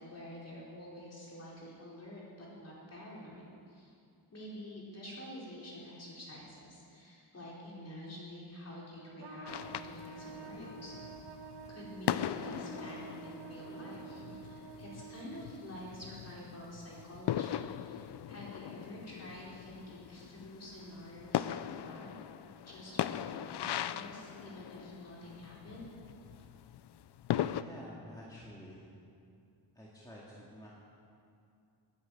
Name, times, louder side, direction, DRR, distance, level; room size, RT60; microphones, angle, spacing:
voice 1, 0.0-3.9 4.3-10.9 11.7-22.1 22.7-25.9, left 1 dB, 35° left, -5 dB, 4.4 m, -48 dB
Trumpet, 9.2-15.7, right 6 dB, 65° right, 1.6 m, -49 dB
sound 1, 9.5-27.6, left 11 dB, 70° left, 0.5 m, -40 dB
voice 2, 27.4-29.0 29.7-30.7, equal, 10° left, -6 dB, 2.0 m, -50 dB
18.5 x 9.6 x 7.6 m, 2.5 s
wide cardioid pair, 165°, 43 cm